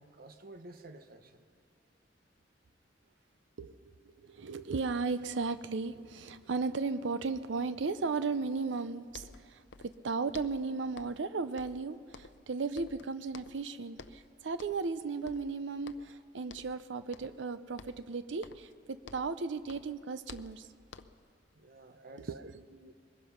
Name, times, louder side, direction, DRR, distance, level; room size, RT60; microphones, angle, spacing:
voice 1, 0.0-1.4 21.5-22.9, right 2 dB, 55° right, 9 dB, 1.0 m, -52 dB
voice 2, 3.6-20.7 22.0-22.5, right 4 dB, 75° right, 13 dB, 0.6 m, -36 dB
sound 1, 8.8-8.9 9.1-10.0 10.3-11.3 11.6-12.5 12.8-13.7 14.0-14.3 14.6-15.0 15.3-16.2 16.5-16.8 17.1-17.5 17.8-19.4 19.7-21.3, left 4 dB, 75° left, 0.7 m, -52 dB
23.0 x 20.5 x 5.8 m, 2.2 s
head